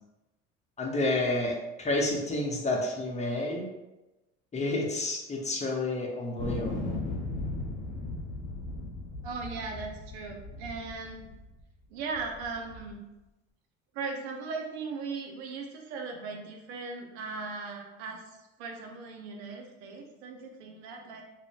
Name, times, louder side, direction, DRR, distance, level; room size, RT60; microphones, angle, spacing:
voice 1, 0.8-3.7 4.5-6.8, left 2 dB, 20° left, -1 dB, 0.7 m, -30 dB
sound 1, 6.4-11.6 12.2-12.9, left 2 dB, 65° left, 0.7 m, -37 dB
voice 2, 9.2-11.3 11.9-13.0 13.9-21.2, right 4 dB, 80° right, 2 dB, 0.6 m, -38 dB
2.5 x 2.1 x 3.4 m, 1.0 s
hypercardioid pair, 70°, 32 cm